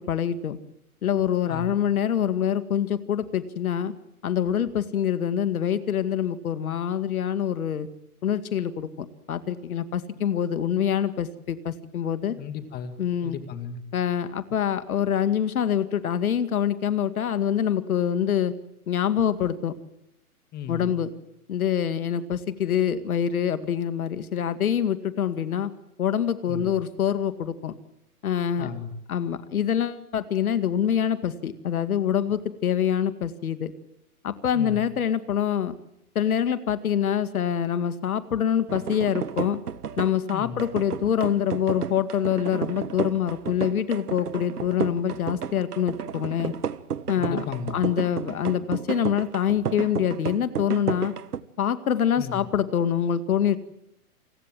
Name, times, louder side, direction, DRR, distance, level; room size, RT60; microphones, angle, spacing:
voice 1, 0.1-0.6 1.0-3.9 4.2-7.9 8.2-12.4 13.0-13.4 13.9-18.5 18.9-19.7 20.7-21.1 21.5-25.7 26.0-27.7 28.2-28.7 29.1-33.7 34.2-35.7 36.2-39.6 40.0-46.5 47.1-47.4 47.7-51.1 51.6-53.6, left 9 dB, 70° left, 12 dB, 2.2 m, -25 dB
voice 2, 12.4-13.0 13.2-13.8 20.5-20.9 26.5-26.7 28.6-28.9 34.5-34.8 40.3-40.6 47.2-47.8 52.2-52.5, left 7 dB, 20° left, 10 dB, 2.0 m, -35 dB
sound 1, 38.7-51.4, right 7 dB, 85° right, 1.5 m, -32 dB
28.5 x 20.5 x 7.6 m, 0.79 s
hypercardioid pair, 135°, 45 cm